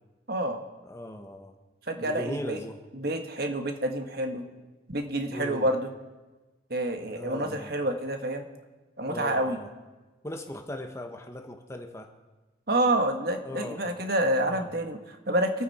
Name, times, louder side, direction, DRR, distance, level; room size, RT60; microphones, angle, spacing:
voice 1, 0.3-0.6 1.9-2.6 2.9-4.4 4.9-5.9 6.7-8.4 9.0-9.6 12.7-15.6, right 1 dB, 55° right, 5 dB, 1.5 m, -28 dB
voice 2, 0.8-1.5 2.0-2.8 5.3-5.7 7.2-7.7 9.1-9.7 10.2-12.1 13.4-14.1 14.4-14.7, left 1 dB, 15° left, 5 dB, 1.0 m, -38 dB
25.5 x 9.1 x 4.3 m, 1.2 s
head